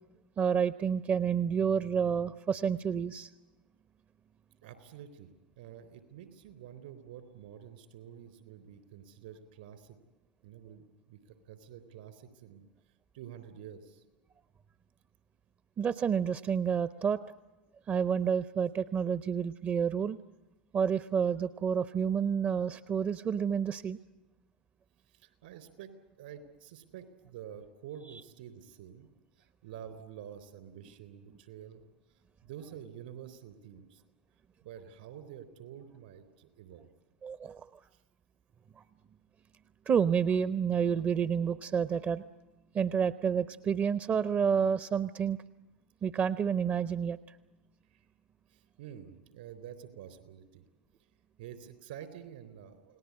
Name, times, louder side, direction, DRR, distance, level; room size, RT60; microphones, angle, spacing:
voice 1, 0.4-3.3 15.8-17.2 17.9-20.2 20.7-24.0 37.2-37.7 39.9-42.2 42.7-45.4 46.0-47.2, right 7 dB, 30° right, 14 dB, 0.8 m, -29 dB
voice 2, 4.6-5.3 5.6-10.0 10.4-12.6 13.1-14.0 25.1-25.9 26.2-29.1 29.4-31.8 32.4-34.0 34.6-36.9 37.9-38.0 47.9-48.1 48.5-50.6 51.4-53.0, right 9 dB, 70° right, 12 dB, 3.9 m, -48 dB
29.5 x 19.0 x 9.7 m, 1.1 s
hypercardioid pair, 80°, 5 cm